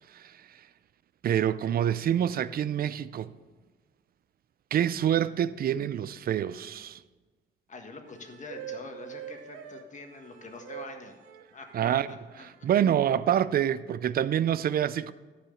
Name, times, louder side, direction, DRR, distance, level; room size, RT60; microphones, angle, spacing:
voice 1, 1.2-3.3 4.7-7.0 11.7-12.1 12.4-15.1, right 10 dB, 50° right, 0.4 m, -26 dB
voice 2, 7.7-11.2 11.5-12.0 12.4-12.7, left 3 dB, 40° left, 1.6 m, -45 dB
sound 1, 8.0-11.9 12.7-13.3, right 10 dB, 85° right, 0.8 m, -44 dB
12.0 x 4.8 x 6.8 m
cardioid pair, 90°, 20 cm